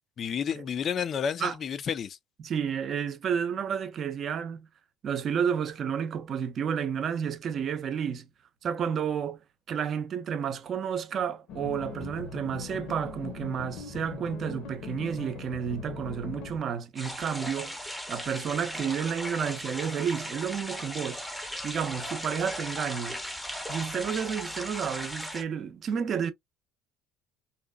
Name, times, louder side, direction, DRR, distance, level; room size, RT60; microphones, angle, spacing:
voice 1, 0.2-2.2, left 7 dB, 45° left, 0.4 m, -31 dB
voice 2, 2.4-4.7 5.0-8.3 8.6-9.4 9.7-17.8 18.1-21.2 21.6-23.2 23.7-26.3, right 7 dB, 45° right, 0.5 m, -31 dB
sound 1, 11.5-16.6, left 5 dB, 65° left, 0.8 m, -40 dB
sound 2, 17.0-25.4, equal, 5° left, 0.6 m, -37 dB
2.7 x 2.2 x 2.2 m
supercardioid pair, 90°, 0 cm